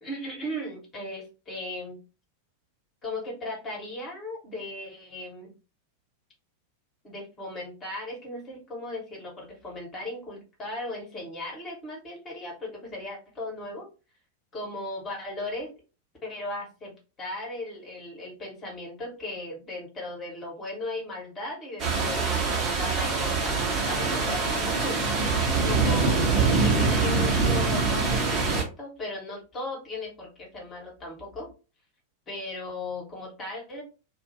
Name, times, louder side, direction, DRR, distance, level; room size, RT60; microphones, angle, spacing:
voice 1, 0.0-2.0 3.0-5.5 7.0-13.9 14.5-15.7 16.2-23.6 23.8-25.0 25.6-31.5 32.3-33.8, left 2 dB, 25° left, -1 dB, 1.4 m, -37 dB
sound 1, 21.8-28.6, right 4 dB, 30° right, 1.0 m, -24 dB
2.4 x 2.4 x 2.9 m, 0.32 s
figure-of-eight pair, 90°, 0 cm